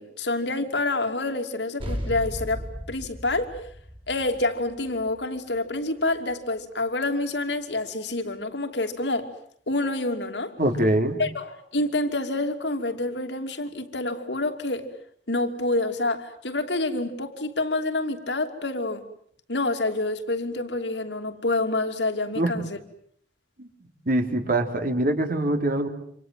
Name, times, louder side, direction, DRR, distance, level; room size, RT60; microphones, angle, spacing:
voice 1, 0.0-3.6 4.1-9.3 9.7-10.6 11.2-14.9 15.3-19.0 19.5-22.8, left 2 dB, 85° left, 7 dB, 2.9 m, -27 dB
sound 1, 1.8-6.6, equal, 30° right, 4.9 m, -37 dB
voice 2, 10.6-11.2 22.4-22.5 24.0-25.9, right 1 dB, 55° right, 6 dB, 3.3 m, -23 dB
28.0 x 27.0 x 7.8 m, 0.64 s
head